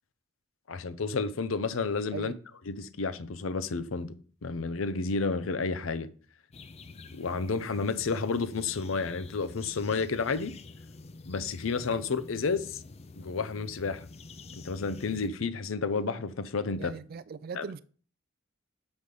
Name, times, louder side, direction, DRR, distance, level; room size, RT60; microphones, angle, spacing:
voice 1, 0.7-2.3 2.7-4.1 4.4-6.1 7.1-10.5 11.3-12.8 13.2-14.1 14.6-16.9 17.6-17.7, left 4 dB, 85° left, 0.6 m, -31 dB
sound 1, 6.5-15.3, left 3 dB, 30° left, 0.4 m, -48 dB
voice 2, 16.8-17.8, right 5 dB, 50° right, 0.3 m, -39 dB
6.3 x 5.4 x 4.9 m
head